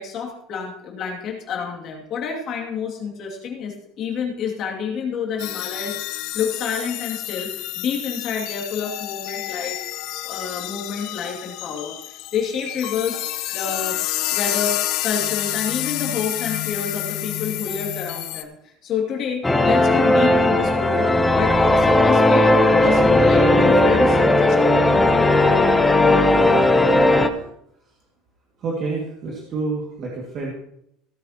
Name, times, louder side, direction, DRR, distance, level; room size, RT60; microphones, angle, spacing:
voice 1, 0.0-9.8 10.2-13.2 13.5-14.0 14.3-22.5 22.8-25.0, left 6 dB, 40° left, -1 dB, 2.5 m, -29 dB
sound 1, 5.4-18.4, left 15 dB, 65° left, 0.8 m, -29 dB
sound 2, 19.4-27.3, left 2 dB, 5° left, 0.7 m, -16 dB
voice 2, 28.6-30.5, right 3 dB, 40° right, -3 dB, 2.2 m, -28 dB
17.0 x 9.2 x 3.0 m, 0.75 s
cardioid pair, 155°, 0 cm